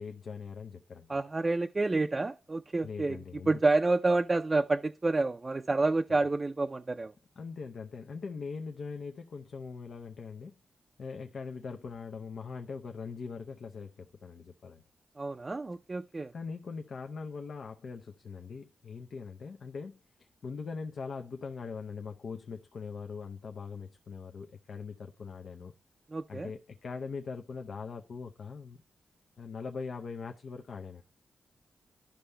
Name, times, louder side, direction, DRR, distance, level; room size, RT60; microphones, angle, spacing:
voice 1, 0.0-1.2 2.8-3.6 7.4-10.5 11.0-14.8 16.3-25.7 26.3-28.8 29.4-31.0, left 5 dB, 70° left, 0.6 m, -41 dB
voice 2, 1.1-3.2 3.5-7.1 15.2-16.3 26.1-26.5, right 3 dB, 35° right, 0.4 m, -29 dB
11.5 x 5.4 x 2.2 m
cardioid pair, 60°, 0 cm